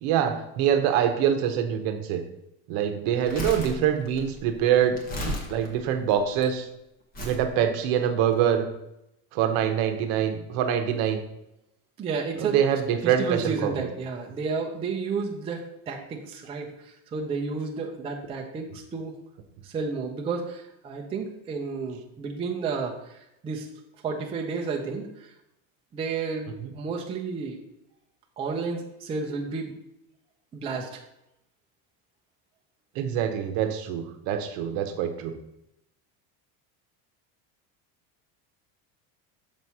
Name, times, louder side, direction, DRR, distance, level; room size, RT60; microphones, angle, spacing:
voice 1, 0.0-2.2 2.7-5.0 5.5-6.7 7.2-8.7 9.3-11.2 12.4-13.9 32.9-35.3, right 9 dB, 60° right, 7 dB, 0.9 m, -25 dB
Crumpling crinkling, 3.1-6.4 7.1-7.5 8.2-8.3, equal, 20° left, 1.0 m, -35 dB
voice 2, 12.0-12.6 13.0-19.1 19.6-23.7 24.0-25.3 25.9-27.6 28.4-29.7 30.5-31.0, right 4 dB, 15° right, 1 dB, 0.4 m, -32 dB
6.9 x 3.1 x 5.4 m, 0.83 s
cardioid pair, 165°, 40 cm